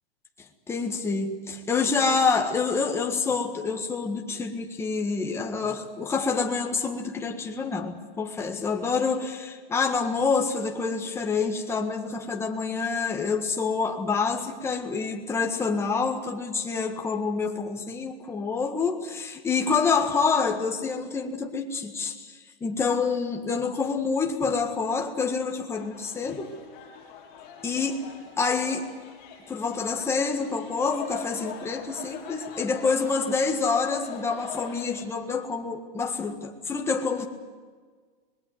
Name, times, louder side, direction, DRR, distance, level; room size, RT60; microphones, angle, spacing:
voice 1, 0.4-26.5 27.6-28.0 28.4-28.9 29.5-37.3, left 4 dB, 10° left, 1.7 m, -27 dB
sound 1, 25.8-35.0, left 7 dB, 30° left, 5.8 m, -43 dB
25.5 x 21.5 x 8.0 m
supercardioid pair, 165°, 29 cm